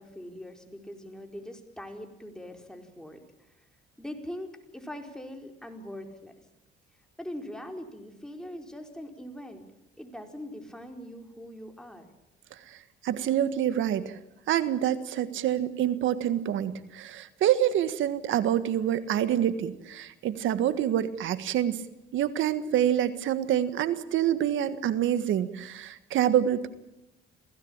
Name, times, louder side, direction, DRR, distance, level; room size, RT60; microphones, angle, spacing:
voice 1, 0.0-3.7 4.0-6.3 7.2-9.7 10.0-12.1, left 1 dB, 5° left, 4 dB, 4.7 m, -42 dB
voice 2, 13.0-14.2 14.5-21.8 22.1-26.7, right 11 dB, 80° right, 13 dB, 1.6 m, -26 dB
27.5 x 17.0 x 8.9 m, 0.91 s
cardioid pair, 90°, 20 cm